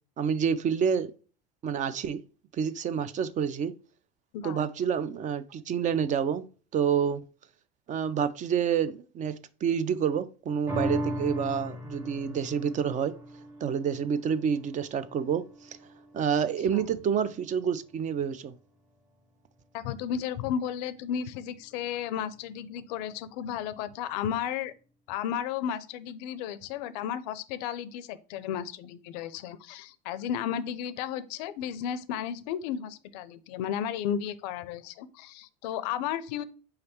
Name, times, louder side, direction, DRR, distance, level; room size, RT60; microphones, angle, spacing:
voice 1, 0.2-1.1 1.6-2.2 2.6-3.7 4.4-6.4 6.7-7.2 7.9-13.1 13.6-15.4 16.1-18.5, right 7 dB, 35° right, 0.4 m, -28 dB
sound 1, 10.7-17.3 17.8-17.9, equal, 10° right, 0.8 m, -38 dB
voice 2, 16.6-16.9 19.7-24.7 25.1-36.4, left 9 dB, 80° left, 0.5 m, -33 dB
4.8 x 3.2 x 2.8 m
supercardioid pair, 100°, 21 cm